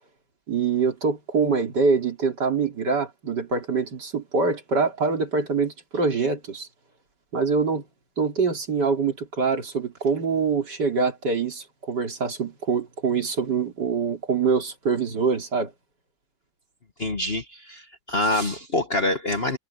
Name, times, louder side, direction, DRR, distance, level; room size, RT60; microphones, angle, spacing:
voice 1, 0.5-6.7 7.3-7.8 8.2-15.7, right 5 dB, 70° right, 3.7 m, -24 dB
voice 2, 17.0-19.6, left 2 dB, 35° left, 1.6 m, -26 dB
omnidirectional pair, 1.9 m